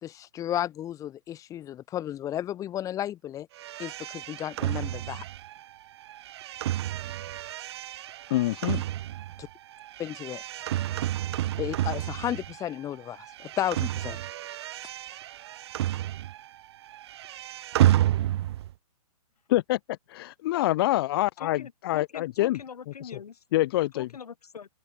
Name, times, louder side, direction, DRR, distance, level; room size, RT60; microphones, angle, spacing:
voice 1, 0.0-3.5 3.8-5.2 9.4-9.5 10.0-10.4 11.6-14.2, left 11 dB, 15° left, 3.4 m, -33 dB
sound 1, 3.6-12.8 13.1-16.6 16.8-18.7, right 13 dB, 45° right, 0.8 m, -30 dB
voice 2, 8.3-8.8 19.5-22.6 23.0-23.1 23.5-24.1, left 16 dB, 40° left, 1.6 m, -26 dB
voice 3, 21.4-23.4 23.9-24.7, left 6 dB, 80° left, 6.3 m, -43 dB
open air
hypercardioid pair, 150°, 20 cm